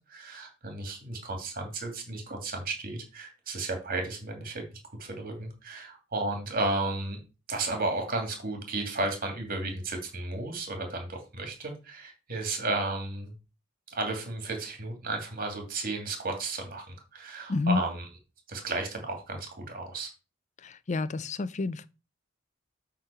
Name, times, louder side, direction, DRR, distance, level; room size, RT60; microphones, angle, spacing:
voice 1, 0.1-4.6 5.0-7.2 7.5-13.3 13.9-16.9 17.1-18.1 18.5-20.1, right 2 dB, 45° right, 2.3 m, -33 dB
voice 2, 17.5-17.8 20.6-21.9, left 3 dB, 35° left, 0.5 m, -29 dB
7.8 x 3.8 x 5.6 m
head